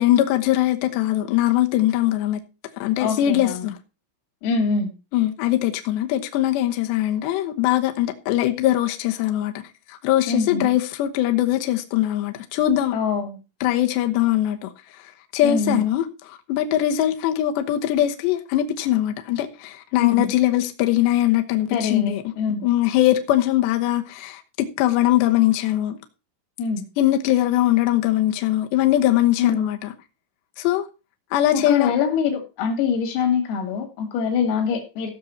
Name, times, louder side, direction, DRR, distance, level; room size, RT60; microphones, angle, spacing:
voice 1, 0.0-2.4 2.8-3.7 5.1-9.5 9.9-12.9 13.6-14.7 15.3-22.2 22.6-26.0 27.0-29.9 30.6-30.9 31.3-31.9, left 13 dB, 70° left, 2.9 m, -21 dB
voice 2, 3.0-3.7 4.4-4.9 10.3-10.7 12.9-13.4 15.4-15.8 20.0-20.3 21.7-22.7 26.6-26.9 29.4-29.7 31.5-35.1, left 5 dB, 90° left, 5.0 m, -24 dB
15.5 x 6.4 x 4.2 m
omnidirectional pair, 5.9 m